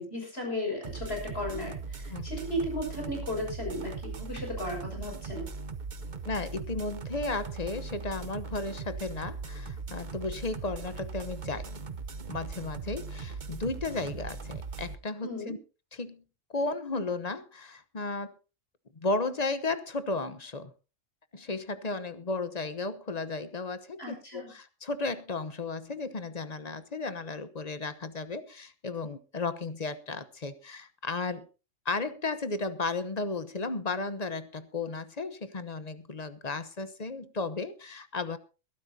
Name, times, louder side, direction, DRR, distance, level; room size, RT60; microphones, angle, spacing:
voice 1, 0.0-5.5 15.2-15.5 24.0-24.5, left 1 dB, 50° left, 1 dB, 6.7 m, -35 dB
sound 1, 0.8-15.0, right 4 dB, 40° right, 1.0 m, -39 dB
voice 2, 6.2-11.7 12.3-15.6 15.9-16.2 16.5-18.3 19.0-20.7 21.3-31.5 31.8-38.4, left 3 dB, 35° left, 12 dB, 1.0 m, -34 dB
22.0 x 12.0 x 2.7 m, 0.32 s
omnidirectional pair, 1.3 m